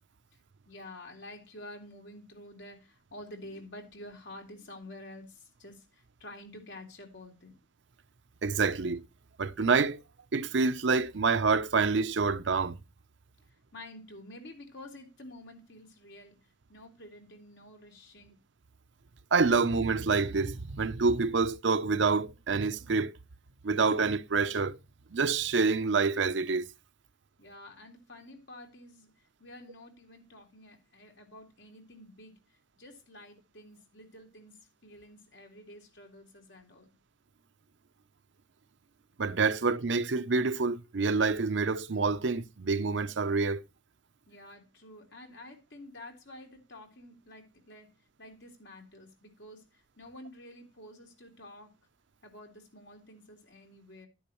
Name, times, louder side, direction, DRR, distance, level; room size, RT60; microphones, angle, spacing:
voice 1, 0.7-7.5 13.7-16.4 16.7-18.3 27.4-29.1 29.4-32.4 32.8-36.9 44.3-47.9 48.2-51.7 52.2-54.1, left 1 dB, 65° left, 3.6 m, -49 dB
voice 2, 8.4-9.0 9.4-10.0 10.3-12.8 19.3-23.1 23.6-24.8 25.1-26.7 39.2-43.6, right 4 dB, 70° right, 0.6 m, -27 dB
11.5 x 10.0 x 3.1 m
head